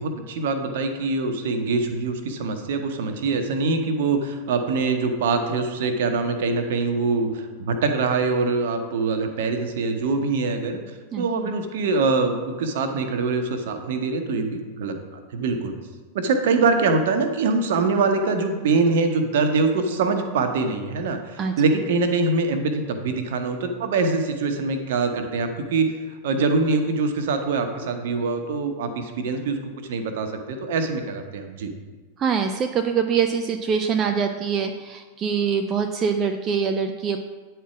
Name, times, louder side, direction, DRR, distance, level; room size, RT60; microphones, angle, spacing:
voice 1, 0.0-10.8 11.2-15.7 16.1-26.0 26.2-29.6 29.9-31.7, right 4 dB, 55° right, 7 dB, 0.9 m, -24 dB
voice 2, 32.2-37.2, right 6 dB, 30° right, 6 dB, 0.4 m, -24 dB
9.1 x 4.5 x 5.9 m, 1.4 s
figure-of-eight pair, 90°, 0 cm